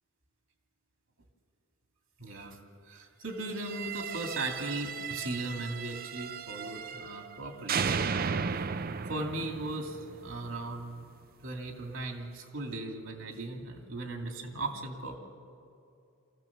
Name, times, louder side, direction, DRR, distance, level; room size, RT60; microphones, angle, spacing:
voice 1, 2.2-2.6 2.8-7.8 9.1-11.1 11.4-15.2, right 2 dB, 75° right, 3 dB, 2.5 m, -37 dB
sound 1, 3.5-7.4 7.7-10.7, right 6 dB, 45° right, 0.5 m, -35 dB
24.0 x 15.0 x 7.3 m, 2.5 s
head